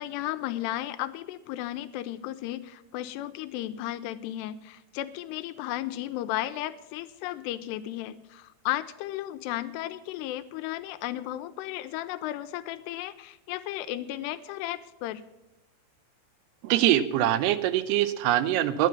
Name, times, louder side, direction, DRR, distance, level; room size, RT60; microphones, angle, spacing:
voice 1, 0.0-15.2, left 14 dB, 85° left, 10 dB, 2.7 m, -34 dB
voice 2, 16.6-18.9, right 13 dB, 85° right, 14 dB, 2.7 m, -23 dB
11.0 x 9.7 x 7.1 m, 0.97 s
omnidirectional pair, 4.7 m